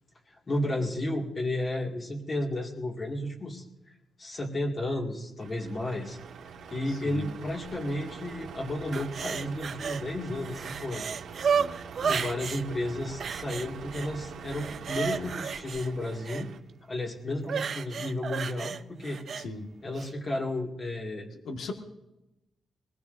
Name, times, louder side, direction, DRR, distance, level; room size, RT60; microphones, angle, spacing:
voice 1, 0.3-3.9 4.2-6.2 6.7-11.2 12.1-16.5 16.9-19.2 19.8-21.3, left 1 dB, 35° left, -2 dB, 2.1 m, -33 dB
Truck, 5.4-16.6, right 6 dB, 90° right, 1.6 m, -44 dB
voice 2, 6.9-7.3 11.4-12.2 15.1-15.3 19.3-19.7 21.4-21.7, left 3 dB, 70° left, 3 dB, 1.7 m, -39 dB
sound 1, 8.9-10.0 10.4-12.6 13.2-14.1 14.4-16.5 17.4-19.5 20.0-20.1, right 6 dB, 55° right, 0.5 m, -32 dB
23.0 x 20.0 x 2.7 m, 0.96 s
cardioid pair, 115°, 0 cm